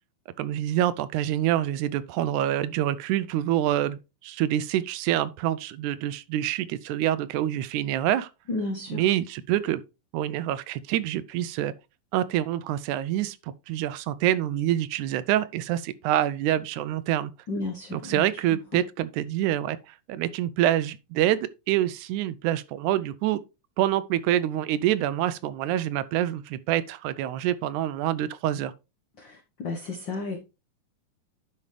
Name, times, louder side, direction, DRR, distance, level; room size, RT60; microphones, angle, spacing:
voice 1, 0.4-8.3 8.9-9.8 10.1-11.7 12.1-13.4 13.7-17.3 17.9-19.8 20.1-23.4 23.8-28.7, right 12 dB, 80° right, 1.8 m, -26 dB
voice 2, 8.5-9.0 17.5-18.2 29.2-29.3 29.6-30.4, left 2 dB, 65° left, 1.1 m, -32 dB
10.5 x 5.4 x 3.2 m
omnidirectional pair, 3.7 m